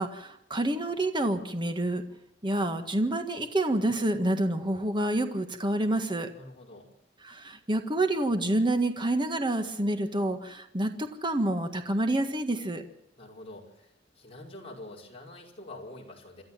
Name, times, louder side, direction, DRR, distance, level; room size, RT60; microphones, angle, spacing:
voice 1, 0.0-2.0 2.4-6.3 7.2-12.8, right 1 dB, 25° right, 7 dB, 1.7 m, -28 dB
voice 2, 6.3-6.9 13.2-16.4, left 1 dB, 30° left, -1 dB, 5.3 m, -46 dB
27.5 x 13.0 x 7.5 m, 0.81 s
head